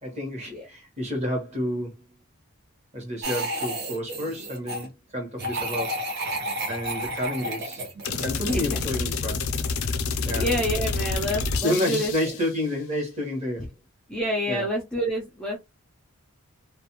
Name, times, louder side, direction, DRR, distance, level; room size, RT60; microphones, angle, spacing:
voice 1, 0.0-1.9 2.9-6.0 6.7-7.8 8.2-9.4 10.2-10.4 11.6-13.7 14.5-14.6, left 1 dB, 30° right, 1.1 m, -30 dB
sound 1, 3.2-4.9 5.4-8.9, right 1 dB, 45° right, 0.8 m, -31 dB
sound 2, 8.0-12.5, left 4 dB, 70° left, 0.4 m, -28 dB
voice 2, 8.5-8.8 10.1-12.1 14.1-15.6, equal, 5° left, 0.4 m, -28 dB
2.4 x 2.2 x 2.9 m
head